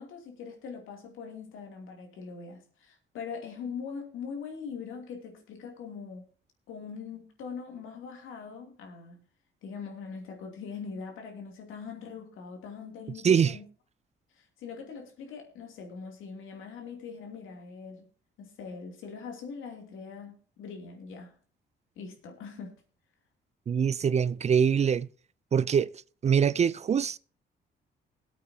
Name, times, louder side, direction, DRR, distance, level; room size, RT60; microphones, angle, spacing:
voice 1, 0.0-6.3 6.7-9.2 9.6-13.6 14.3-18.1 18.4-21.3 22.0-22.7, left 5 dB, 85° left, 2.8 m, -42 dB
voice 2, 13.2-13.6 23.7-25.1 25.5-25.9 26.2-27.2, right 7 dB, 35° right, 0.4 m, -24 dB
21.0 x 8.4 x 2.8 m
cardioid pair, 90°, 20 cm